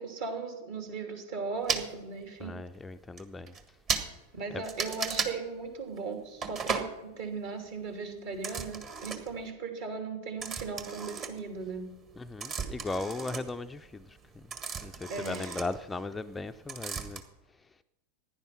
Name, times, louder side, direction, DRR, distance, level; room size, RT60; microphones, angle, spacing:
voice 1, 0.0-2.6 4.3-11.9 15.1-15.6, right 4 dB, 55° right, 3.0 m, -37 dB
sound 1, 1.7-1.9 2.7-2.8 3.2-3.3 3.5-3.6 3.9-4.1 4.6-5.3 6.4-6.9 8.3-9.4 10.4-11.8 12.1-16.4 16.7-17.2, right 5 dB, 30° right, 1.6 m, -35 dB
voice 2, 2.4-3.5 4.5-4.6 12.2-14.5 14.8-17.2, left 3 dB, 10° left, 0.4 m, -37 dB
16.0 x 10.5 x 6.0 m
figure-of-eight pair, 90°, 0 cm